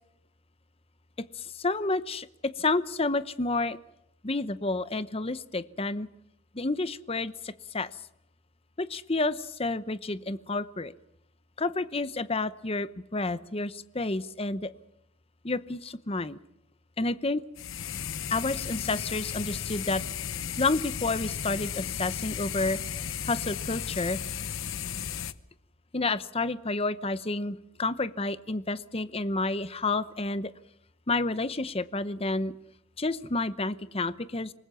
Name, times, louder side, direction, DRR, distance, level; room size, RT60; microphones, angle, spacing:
voice 1, 1.4-3.8 4.2-6.1 6.5-7.9 8.8-10.9 11.6-14.7 15.4-16.4 17.0-17.4 18.3-20.0 20.6-22.8 23.3-24.2 25.9-30.5 31.1-32.5 33.0-34.5, left 3 dB, 25° left, 15 dB, 0.8 m, -30 dB
sound 1, 17.6-25.3, left 8 dB, 65° left, 0.9 m, -35 dB
27.5 x 20.0 x 7.0 m, 0.80 s
head